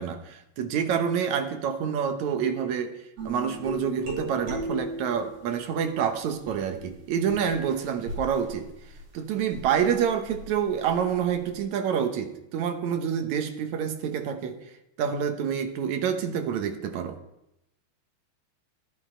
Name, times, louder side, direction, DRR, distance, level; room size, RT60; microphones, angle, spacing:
voice 1, 0.0-3.0 3.3-8.7 9.1-14.6 15.0-17.2, right 8 dB, 65° right, 6 dB, 2.0 m, -27 dB
sound 1, 3.2-5.6 6.3-11.5, equal, 45° right, 3.8 m, -38 dB
13.0 x 11.5 x 4.4 m, 0.86 s
omnidirectional pair, 4.1 m